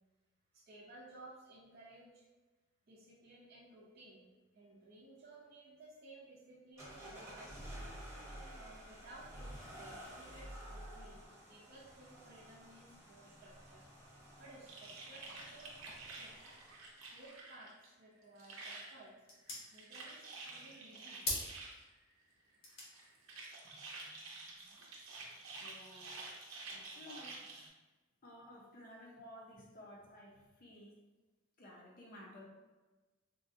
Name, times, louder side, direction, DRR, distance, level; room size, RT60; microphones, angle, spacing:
voice 1, 0.5-2.3 2.9-4.2 4.5-7.9 8.6-9.5 9.8-11.2 11.5-13.8 14.4-16.3 17.1-19.1 19.7-21.2, right 2 dB, 45° right, -5 dB, 0.5 m, -57 dB
sound 1, 6.8-17.0, equal, 15° right, 0.9 m, -52 dB
sound 2, 14.7-17.9 18.2-19.0 19.5-21.8 22.7-27.7, right 3 dB, 90° right, 0.6 m, -50 dB
sound 3, 18.2-25.1, left 2 dB, 75° left, 0.9 m, -47 dB
voice 2, 25.6-26.2 26.7-27.5 28.2-31.0 31.6-32.4, left 1 dB, 45° left, -3 dB, 0.5 m, -54 dB
3.7 x 2.1 x 2.6 m, 1.2 s
head